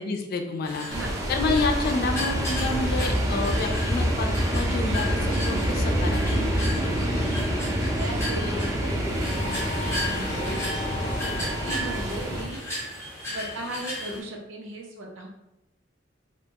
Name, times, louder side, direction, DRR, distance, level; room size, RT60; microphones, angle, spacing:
voice 1, 0.0-0.9 1.3-7.3 11.7-11.8, left 3 dB, 50° left, 4 dB, 0.3 m, -29 dB
Abandoned Greenhouse by the Sea, 0.6-14.2, left 1 dB, 15° left, 0.7 m, -35 dB
sound 1, 0.9-12.4, equal, 15° right, 0.5 m, -26 dB
voice 2, 0.9-1.2 7.9-10.8 11.6-12.6 13.2-15.3, right 1 dB, 70° right, -1 dB, 0.7 m, -37 dB
2.7 x 2.2 x 2.8 m, 0.90 s
head